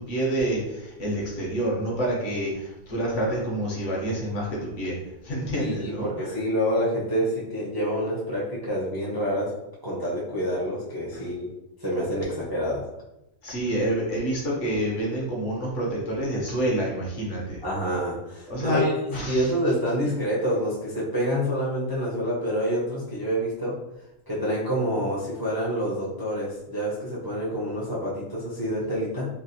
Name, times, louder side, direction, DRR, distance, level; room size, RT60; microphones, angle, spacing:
voice 1, 0.0-4.9 5.2-6.3 13.4-17.6 18.5-18.8 19.1-19.5, right 1 dB, 65° left, -3 dB, 1.2 m, -28 dB
voice 2, 5.6-9.5 9.8-11.5 11.8-12.8 17.6-18.9 19.2-23.7 24.3-29.3, equal, 25° right, -7 dB, 0.5 m, -27 dB
3.2 x 2.3 x 2.6 m, 0.88 s
omnidirectional pair, 1.4 m